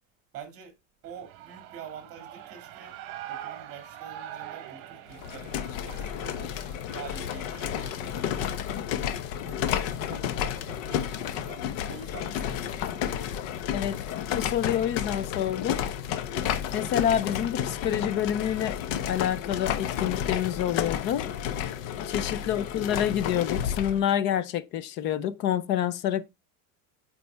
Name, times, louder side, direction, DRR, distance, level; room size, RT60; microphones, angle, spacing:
voice 1, 0.3-0.8 1.0-3.0 3.3-6.5 6.9-8.7 9.4-13.3 22.4-22.8, right 6 dB, 35° right, 2.0 m, -46 dB
Shout / Cheering, 1.0-8.8, right 12 dB, 50° right, 1.2 m, -44 dB
sound 1, 5.1-24.0, left 9 dB, 65° left, 1.0 m, -31 dB
voice 2, 14.3-15.8 16.7-18.8 19.1-21.3 22.1-26.2, left 10 dB, 30° left, 0.3 m, -28 dB
8.6 x 4.3 x 3.3 m
cardioid pair, 170°, 42 cm